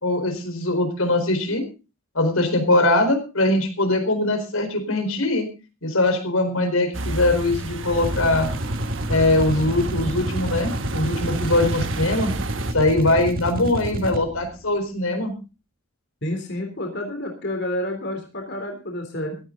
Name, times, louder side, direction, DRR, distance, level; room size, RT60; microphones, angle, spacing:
voice 1, 0.0-1.6 2.1-5.5 5.8-8.5 9.1-12.3 12.7-15.3, left 2 dB, 80° left, 6 dB, 4.4 m, -21 dB
sound 1, 6.9-12.7, right 2 dB, 60° right, 1.3 m, -31 dB
sound 2, 7.9-14.5, equal, 45° right, 1.6 m, -30 dB
voice 2, 16.2-19.4, left 1 dB, 50° left, 3 dB, 3.7 m, -29 dB
16.5 x 13.5 x 3.9 m, 0.32 s
head